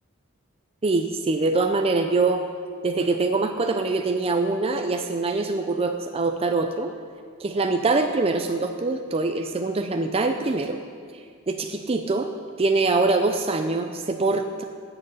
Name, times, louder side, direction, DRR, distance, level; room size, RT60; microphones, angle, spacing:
voice 1, 0.8-2.4 2.8-6.9 7.4-10.8 11.5-12.3 12.6-14.6, right 3 dB, 25° right, 5 dB, 0.5 m, -24 dB
10.5 x 7.8 x 8.3 m, 2.2 s
head